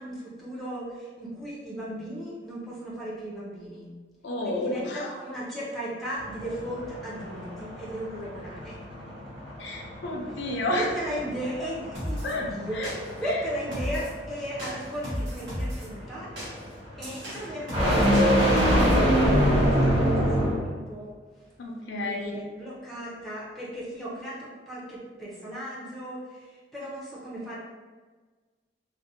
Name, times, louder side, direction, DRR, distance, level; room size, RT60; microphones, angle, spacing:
voice 1, 0.0-3.9 4.4-8.8 10.7-16.3 17.0-21.2 22.0-27.6, equal, ahead, -7 dB, 0.5 m, -36 dB
voice 2, 4.2-5.1 9.6-10.9 12.2-12.4 12.7-12.9 21.6-22.4, left 1 dB, 75° left, 0 dB, 0.4 m, -30 dB
sound 1, 6.2-20.7, equal, 30° right, 1.0 m, -26 dB
sound 2, 11.9-12.3 12.8-13.3 13.7-14.2 14.6-15.9 16.4-19.0, equal, 70° right, 0.9 m, -34 dB
2.5 x 2.0 x 2.6 m, 1.4 s
head